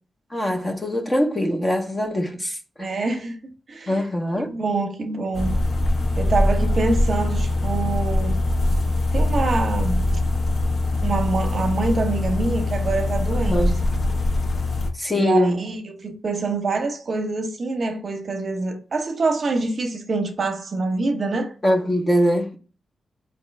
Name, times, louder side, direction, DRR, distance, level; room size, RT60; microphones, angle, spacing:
voice 1, 0.3-2.9 3.9-4.5 13.3-13.8 15.0-15.6 21.6-22.6, equal, 20° left, 0.8 m, -22 dB
voice 2, 2.8-3.4 3.7-4.0 4.4-5.6 6.2-8.4 9.1-10.0 11.0-13.6 14.1-14.2 15.1-21.5, right 3 dB, 50° right, 0.8 m, -25 dB
sound 1, 5.3-14.9, left 2 dB, 55° left, 1.0 m, -22 dB
4.3 x 2.8 x 3.2 m
wide cardioid pair, 115°, 0 cm